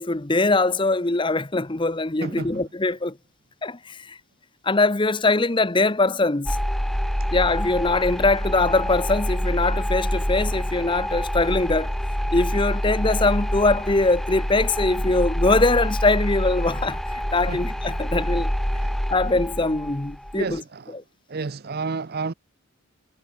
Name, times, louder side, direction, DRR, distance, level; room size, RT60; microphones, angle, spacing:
voice 1, 0.0-3.2 3.6-4.2 4.6-6.6 7.3-11.9 12.3-18.5 19.1-20.6, left 2 dB, 25° left, 0.8 m, -22 dB
voice 2, 2.2-2.6 7.2-7.3 17.5-17.7 18.3-18.5 18.7-19.0 20.3-21.0 21.3-22.3, right 4 dB, 45° right, 0.6 m, -32 dB
sound 1, 6.5-20.6, equal, ahead, 0.3 m, -26 dB
head